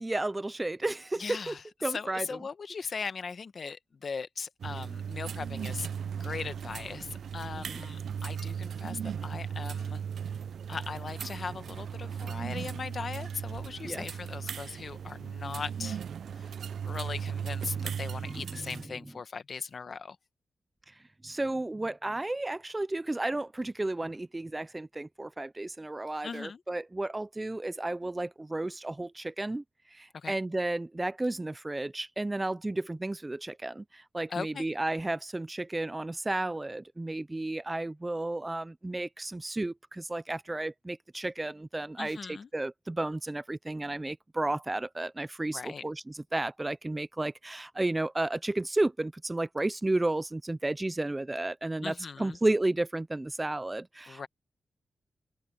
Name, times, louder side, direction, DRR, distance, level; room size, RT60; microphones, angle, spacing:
voice 1, 0.0-1.6 1.8-2.4 7.5-7.8 13.8-14.1 17.7-17.9 18.2-19.0 21.2-29.6 29.9-54.3, right 2 dB, 15° right, 0.4 m, -33 dB
voice 2, 1.2-5.9 6.2-10.0 10.7-16.0 16.3-16.5 16.8-20.2 26.2-26.6 30.1-30.4 34.3-34.7 42.0-42.5 45.5-45.8 51.8-52.4 54.1-54.3, left 5 dB, 50° left, 1.1 m, -39 dB
sound 1, 4.6-18.9, right 7 dB, 80° right, 0.4 m, -37 dB
wide cardioid pair, 120°, 0 cm